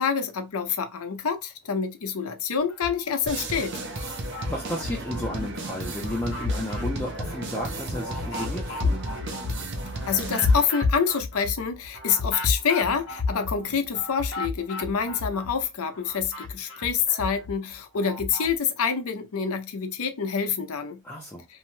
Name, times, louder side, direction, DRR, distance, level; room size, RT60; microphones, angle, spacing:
voice 1, 0.0-3.8 10.1-21.0, left 6 dB, 85° left, 0.6 m, -27 dB
sound 1, 2.7-3.5 3.9-5.5 5.9-15.6 15.9-18.5, left 3 dB, 55° left, 0.8 m, -31 dB
sound 2, 3.3-10.7, right 2 dB, 50° right, 0.6 m, -34 dB
voice 2, 4.0-9.0 21.0-21.5, left 1 dB, 10° left, 0.5 m, -33 dB
2.7 x 2.2 x 3.0 m
head